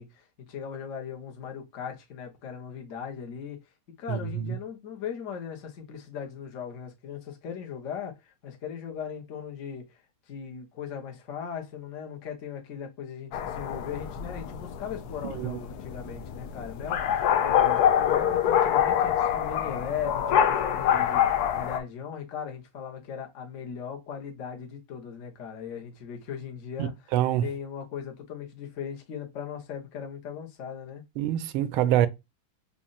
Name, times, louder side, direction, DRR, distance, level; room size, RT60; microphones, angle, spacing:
voice 1, 0.0-3.6 4.0-31.0, left 7 dB, 45° left, 1.1 m, -38 dB
voice 2, 4.1-4.5 15.2-15.6 26.8-27.5 31.2-32.1, right 11 dB, 85° right, 1.4 m, -26 dB
sound 1, 13.3-21.8, left 9 dB, 75° left, 0.8 m, -25 dB
5.2 x 2.6 x 2.4 m
omnidirectional pair, 2.3 m